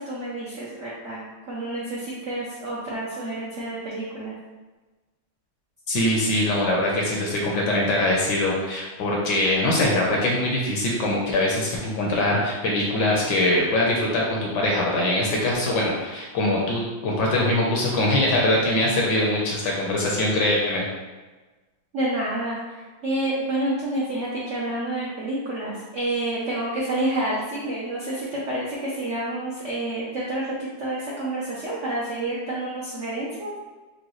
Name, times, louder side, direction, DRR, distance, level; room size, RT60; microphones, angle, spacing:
voice 1, 0.0-4.4 21.9-33.5, right 1 dB, 75° right, -7 dB, 0.6 m, -29 dB
voice 2, 5.9-20.9, left 1 dB, 70° left, -3 dB, 1.1 m, -22 dB
5.0 x 2.2 x 3.0 m, 1.2 s
omnidirectional pair, 2.3 m